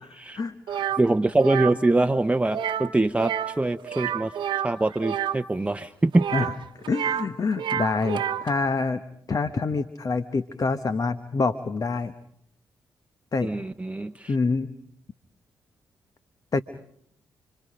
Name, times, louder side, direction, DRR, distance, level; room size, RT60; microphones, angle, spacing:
voice 1, 0.4-0.9 6.3-9.0 9.3-12.1 13.3-13.5 14.3-14.7 16.5-16.6, left 4 dB, 45° left, 11 dB, 1.1 m, -26 dB
sound 1, 0.7-1.0 1.4-1.7 2.5-2.9 3.2-3.6 3.9-5.4 6.1-7.3 7.5-8.5, right 10 dB, 70° right, 1.1 m, -28 dB
voice 2, 1.0-4.3 4.6-6.2 13.4-14.4, right 2 dB, 15° right, 8 dB, 0.9 m, -24 dB
30.0 x 24.0 x 5.1 m, 0.70 s
hypercardioid pair, 40°, 9 cm